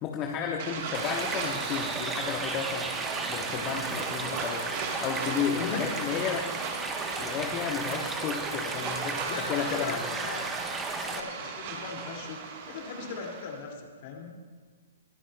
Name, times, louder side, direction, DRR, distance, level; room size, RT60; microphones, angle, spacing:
voice 1, 0.0-2.9 3.3-4.7 5.0-6.5 7.2-10.1, left 7 dB, 30° left, 1 dB, 1.0 m, -33 dB
sound 1, 0.6-13.6, right 5 dB, 45° right, 1.3 m, -38 dB
sound 2, 0.9-11.2, right 3 dB, 15° right, 1.0 m, -34 dB
voice 2, 5.6-5.9 9.3-10.5 11.0-12.4 12.7-14.3, left 5 dB, 50° left, 1 dB, 2.3 m, -38 dB
21.5 x 11.5 x 2.2 m, 1.5 s
hypercardioid pair, 125°, 0 cm